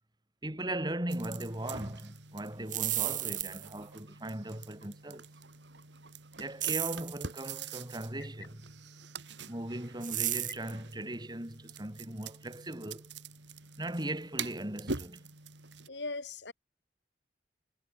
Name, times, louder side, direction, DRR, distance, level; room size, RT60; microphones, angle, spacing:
voice 1, 0.4-5.3 6.4-8.7 9.5-13.1 13.8-15.3, right 1 dB, 25° right, 2.8 m, -38 dB
sound 1, 1.1-15.9, right 4 dB, 80° right, 2.9 m, -45 dB
sound 2, 2.5-3.8 6.6-7.1 10.0-10.7, right 14 dB, 50° right, 3.0 m, -33 dB
voice 2, 15.9-16.5, left 3 dB, 80° left, 3.3 m, -38 dB
head